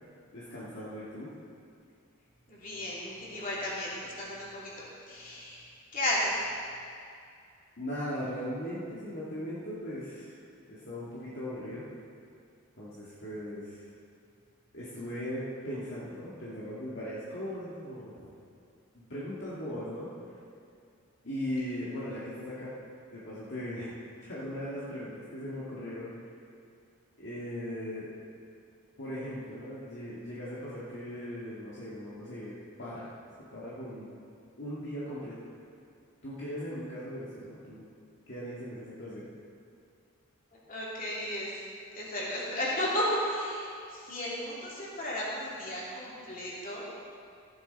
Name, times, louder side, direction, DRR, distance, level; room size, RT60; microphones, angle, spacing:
voice 1, 0.3-1.3 7.8-10.3 10.7-11.8 12.8-13.9 14.7-18.3 18.9-20.1 21.2-22.7 23.1-23.9 24.2-26.1 27.2-28.1 29.0-33.1 33.5-34.1 34.6-35.3 36.2-37.9 38.3-39.3, equal, 55° left, -9 dB, 2.0 m, -38 dB
voice 2, 2.5-4.7 5.1-6.4 40.7-41.6 41.9-46.9, left 1 dB, 40° left, -6 dB, 3.0 m, -34 dB
15.0 x 11.0 x 4.2 m, 2.4 s
head